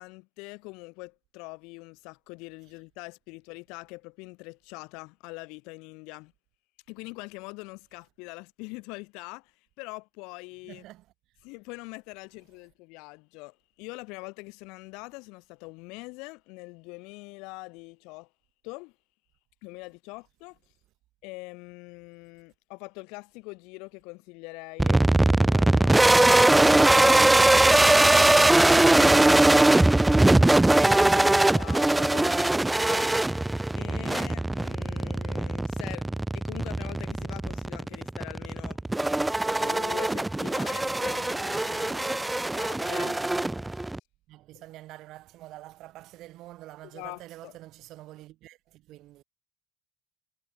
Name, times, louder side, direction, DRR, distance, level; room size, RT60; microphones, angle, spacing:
voice 1, 0.0-6.3 6.9-10.8 11.4-18.3 18.6-18.9 19.6-20.6 21.2-26.5 26.9-27.3 28.3-29.8 30.5-38.8 39.4-43.1 43.8-43.9 44.5-44.6 46.8-47.6, left 27 dB, 75° left, 1.4 m, -43 dB
voice 2, 10.7-11.1 42.9-43.2 44.3-49.2, right 16 dB, 65° right, 5.3 m, -46 dB
sound 1, 24.8-44.0, right 2 dB, 10° right, 0.7 m, -21 dB
hypercardioid pair, 65°, 0 cm